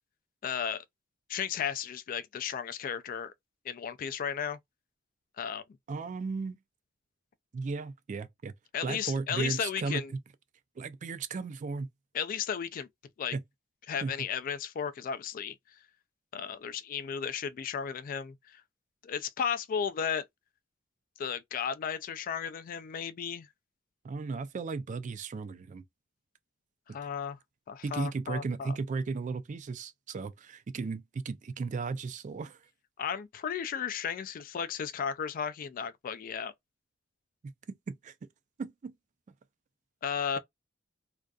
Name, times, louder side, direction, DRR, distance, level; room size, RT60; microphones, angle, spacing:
voice 1, 0.4-0.8 1.3-3.3 3.6-4.6 5.4-5.6 8.7-10.1 12.1-12.9 13.2-13.4 13.9-15.6 16.3-18.6 19.0-20.3 21.2-23.5 26.9-27.4 27.7-28.7 33.0-36.5 40.0-40.4, left 7 dB, 45° left, 0.3 m, -34 dB
voice 2, 5.9-6.6 7.5-8.5 8.8-10.0 10.8-11.9 13.3-13.4 14.0-14.1 24.0-25.8 27.8-32.6 37.4-37.5 37.9-38.1 38.6-38.9, right 4 dB, 40° right, 0.3 m, -35 dB
2.5 x 2.3 x 2.2 m
head